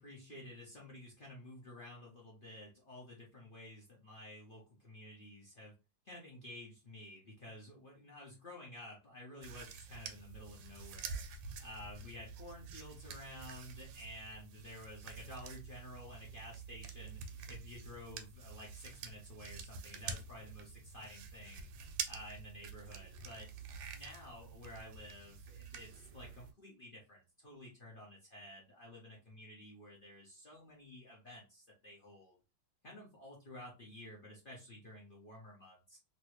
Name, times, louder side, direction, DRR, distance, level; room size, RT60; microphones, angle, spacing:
voice 1, 0.0-5.7 6.0-11.2 11.6-17.2 17.5-21.7 22.1-23.5 23.9-32.4 32.8-36.0, left 1 dB, 55° left, -3 dB, 0.5 m, -52 dB
sound 1, 9.4-26.5, right 6 dB, 75° right, 1.2 m, -48 dB
3.0 x 2.6 x 3.0 m, 0.30 s
omnidirectional pair, 2.1 m